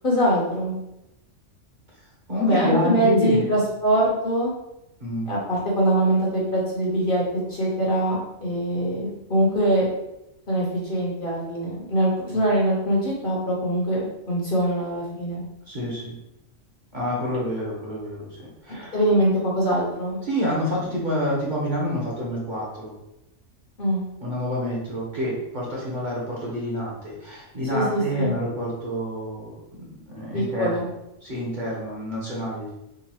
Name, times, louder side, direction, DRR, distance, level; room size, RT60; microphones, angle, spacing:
voice 1, 0.0-0.7 2.4-4.5 5.3-7.2 7.5-9.8 10.5-15.4 18.7-20.2 23.8-24.0 27.7-28.4 30.3-30.8, right 1 dB, 45° left, -5 dB, 1.0 m, -23 dB
voice 2, 2.3-3.5 5.0-5.3 12.3-12.4 15.7-16.1 16.9-19.0 20.2-22.9 24.2-29.5 30.0-30.7 31.2-32.7, equal, 40° right, -5 dB, 1.1 m, -28 dB
3.8 x 2.4 x 3.0 m, 0.88 s
omnidirectional pair, 1.3 m